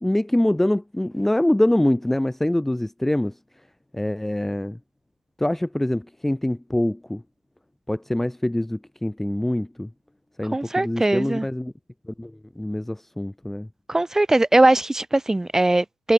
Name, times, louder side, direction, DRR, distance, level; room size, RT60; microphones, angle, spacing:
voice 1, 0.0-3.3 3.9-4.8 5.4-7.2 7.9-9.9 10.4-11.7 12.2-12.3 12.6-13.7, left 1 dB, 5° left, 0.8 m, -24 dB
voice 2, 10.4-11.5 13.9-16.1, right 2 dB, 15° right, 1.6 m, -20 dB
cardioid pair, 90°, 4 cm